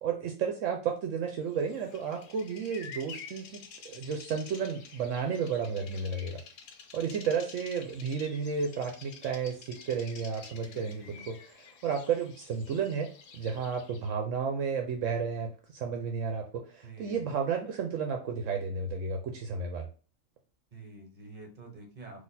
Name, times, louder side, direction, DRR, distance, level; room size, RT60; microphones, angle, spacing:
voice 1, 0.0-6.4 6.9-11.4 11.8-19.9, right 6 dB, 70° right, 3 dB, 1.0 m, -32 dB
Bird vocalization bird call bird song, 1.5-14.2, left 6 dB, 70° left, 1.1 m, -50 dB
voice 2, 10.6-11.2 16.8-17.3 20.7-22.2, right 2 dB, 35° right, 2 dB, 1.2 m, -48 dB
4.1 x 2.8 x 4.0 m, 0.37 s
omnidirectional pair, 1.4 m